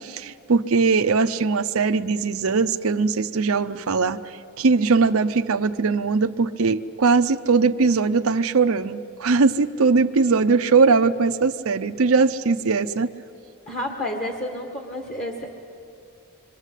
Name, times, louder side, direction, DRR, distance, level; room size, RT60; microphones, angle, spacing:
voice 1, 0.0-13.1, right 4 dB, 70° right, 8 dB, 0.7 m, -20 dB
voice 2, 13.7-15.5, left 1 dB, 35° left, 2 dB, 1.9 m, -30 dB
26.5 x 23.0 x 8.3 m, 2.7 s
head